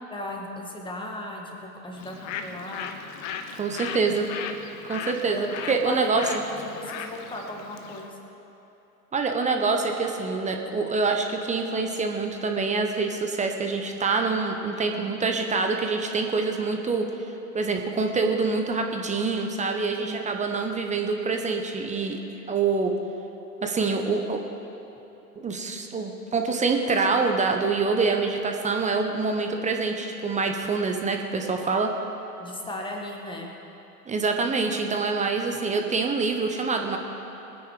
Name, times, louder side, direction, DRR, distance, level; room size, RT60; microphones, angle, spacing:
voice 1, 0.1-3.0 5.2-8.2 14.7-15.1 20.0-20.3 32.4-33.5, left 1 dB, 10° left, 0 dB, 1.9 m, -37 dB
Bird, 1.9-8.1, left 6 dB, 35° left, 1.0 m, -37 dB
voice 2, 3.6-4.3 4.8-6.2 9.1-17.1 17.5-22.2 22.5-22.9 23.6-24.4 25.4-31.9 34.1-37.0, right 4 dB, 15° right, 4 dB, 1.0 m, -26 dB
21.0 x 9.5 x 4.9 m, 3.0 s
hypercardioid pair, 105°, 49 cm